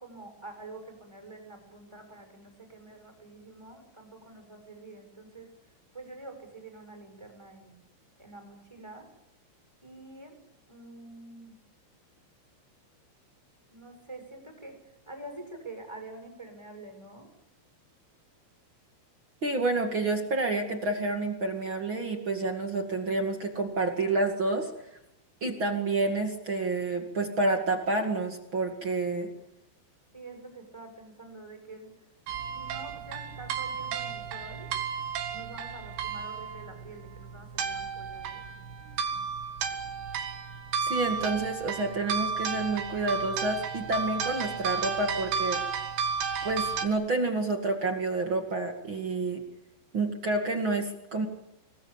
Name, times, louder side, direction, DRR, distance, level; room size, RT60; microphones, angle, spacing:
voice 1, 0.0-5.5 5.9-7.8 8.2-9.1 9.8-10.3 10.7-11.5 13.7-14.8 15.1-17.3 30.1-31.9 32.5-34.7 35.3-38.7, right 2 dB, 5° right, 4 dB, 6.3 m, -46 dB
voice 2, 19.4-24.7 25.4-29.3 40.9-45.6 46.4-49.4 49.9-51.3, right 2 dB, 40° right, 4 dB, 2.0 m, -29 dB
sound 1, 32.3-46.9, right 6 dB, 70° right, 4.0 m, -33 dB
26.5 x 20.0 x 8.7 m, 0.88 s
omnidirectional pair, 5.2 m